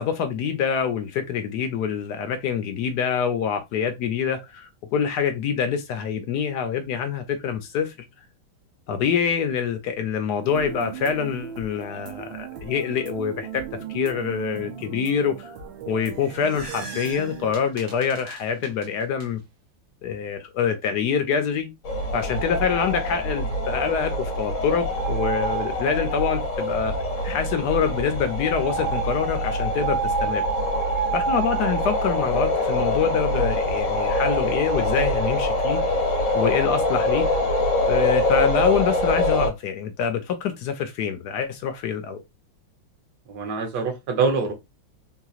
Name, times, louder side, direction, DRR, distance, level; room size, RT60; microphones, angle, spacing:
voice 1, 0.0-7.9 8.9-13.6 13.9-15.5 15.9-19.4 20.0-21.7 22.1-27.0 27.2-30.4 31.1-35.8 36.3-37.3 37.8-42.2, left 7 dB, 70° left, 1.0 m, -25 dB
sound 1, 10.4-17.5, right 9 dB, 85° right, 1.5 m, -37 dB
sound 2, 15.9-19.3, right 3 dB, 45° right, 1.0 m, -42 dB
sound 3, 21.8-39.5, left 1 dB, 50° left, 1.1 m, -24 dB
voice 2, 43.3-44.5, right 4 dB, 65° right, 1.4 m, -24 dB
3.9 x 2.8 x 2.3 m
omnidirectional pair, 2.1 m